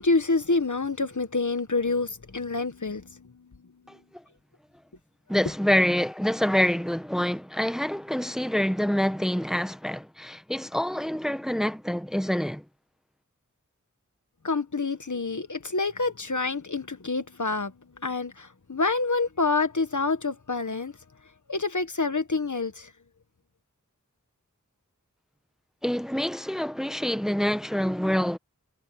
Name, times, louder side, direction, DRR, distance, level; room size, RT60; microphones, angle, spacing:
voice 1, 0.0-3.3 14.4-17.7 18.0-20.9 21.5-22.9, left 3 dB, 70° left, 1.6 m, -27 dB
voice 2, 3.9-4.2 5.3-12.6 25.8-28.4, equal, ahead, 1.2 m, -26 dB
wide cardioid pair, 40°, 31 cm